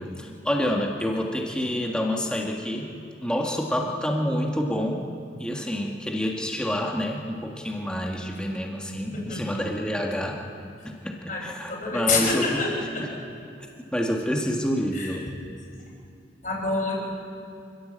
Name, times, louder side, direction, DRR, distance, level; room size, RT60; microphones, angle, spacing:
voice 1, 0.0-2.9 3.2-5.1 5.4-10.4 10.8-11.1 11.4-12.6 13.9-15.2, equal, 5° left, 0 dB, 1.8 m, -28 dB
voice 2, 11.7-13.1 14.9-15.2 16.4-16.9, left 4 dB, 45° left, -2 dB, 5.6 m, -27 dB
26.0 x 15.5 x 7.6 m, 2.5 s
head